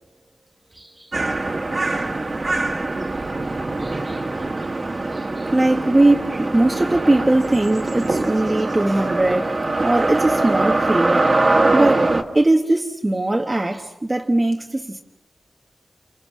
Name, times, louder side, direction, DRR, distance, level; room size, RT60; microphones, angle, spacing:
voice 1, 0.7-1.1 3.8-4.3 5.1-11.4 11.7-15.0, right 2 dB, 25° right, 1.4 m, -20 dB
sound 1, 1.1-12.2, right 2 dB, 40° right, 1.9 m, -22 dB
30.0 x 27.5 x 6.3 m
wide cardioid pair, 95°, 0 cm